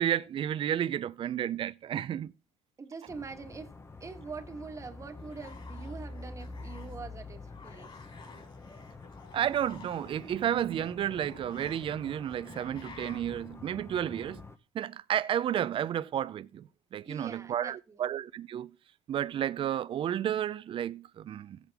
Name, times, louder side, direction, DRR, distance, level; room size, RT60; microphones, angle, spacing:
voice 1, 0.0-2.3 9.3-14.4 14.7-18.7 19.1-21.6, right 10 dB, 50° right, 0.6 m, -32 dB
voice 2, 2.8-3.7 4.0-8.0 17.0-18.1, right 4 dB, 25° right, 1.5 m, -44 dB
sound 1, 3.1-14.6, left 3 dB, 20° left, 0.9 m, -47 dB
sound 2, 5.2-7.1 7.4-13.3, left 4 dB, 45° left, 4.3 m, -53 dB
14.5 x 8.2 x 3.5 m
cardioid pair, 110°, 12 cm